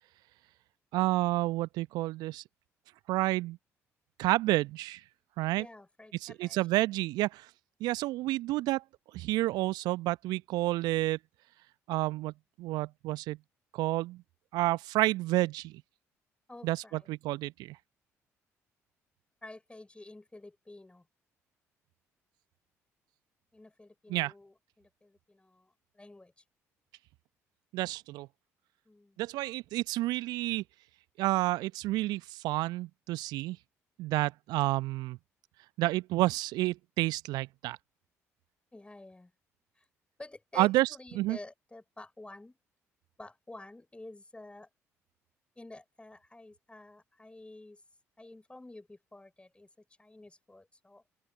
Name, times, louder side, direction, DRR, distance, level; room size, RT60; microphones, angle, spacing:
voice 1, 0.9-2.4 3.1-3.6 4.2-5.0 5.4-5.6 6.2-7.5 7.8-8.8 9.1-11.2 11.9-12.3 12.6-13.4 13.7-14.2 14.5-15.8 16.6-17.8 24.1-24.3 27.7-28.3 29.2-30.6 31.2-33.6 34.0-35.2 35.8-37.8 40.6-40.9 41.1-41.4, right 18 dB, 65° right, 1.1 m, -30 dB
voice 2, 5.6-6.6 16.5-17.1 19.4-21.1 23.5-26.4 28.9-29.2 38.7-39.3 39.8-39.9 40.2-42.6 43.2-44.7 45.6-47.8 48.2-49.7 50.0-51.0, left 2 dB, 15° left, 5.3 m, -50 dB
open air
figure-of-eight pair, 50°, 8 cm